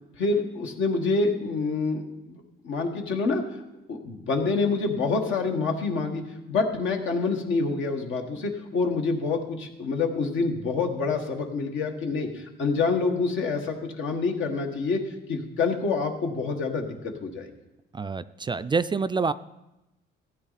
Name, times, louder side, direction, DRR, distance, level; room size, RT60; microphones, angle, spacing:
voice 1, 0.2-2.4 2.6-3.4 3.9-15.0 15.3-17.5, left 4 dB, 80° left, 3 dB, 1.7 m, -27 dB
voice 2, 17.9-19.3, right 4 dB, 25° right, 13 dB, 0.3 m, -27 dB
14.5 x 8.8 x 4.2 m, 0.94 s
cardioid pair, 90°, 20 cm